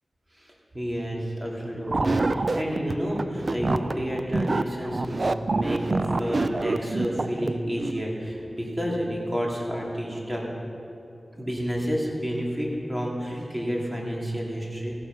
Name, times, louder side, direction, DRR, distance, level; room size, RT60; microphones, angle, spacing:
voice 1, 0.3-10.5 11.3-14.9, equal, 20° right, -3 dB, 3.1 m, -30 dB
sound 1, 1.9-8.0, right 3 dB, 50° right, 0.5 m, -27 dB
15.5 x 12.5 x 5.5 m, 2.6 s
wide cardioid pair, 70°, 0 cm